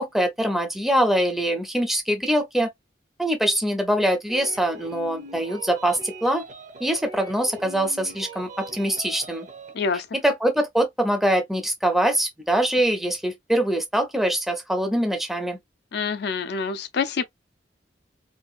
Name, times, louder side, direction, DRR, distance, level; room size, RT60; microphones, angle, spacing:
voice 1, 0.0-2.7 3.2-6.4 6.8-9.5 10.1-15.6, right 1 dB, ahead, 0.5 m, -23 dB
sound 1, 4.3-9.8, right 2 dB, 45° right, 0.6 m, -41 dB
voice 2, 9.7-10.1 15.9-17.2, left 5 dB, 65° left, 0.4 m, -26 dB
2.7 x 2.3 x 2.4 m
head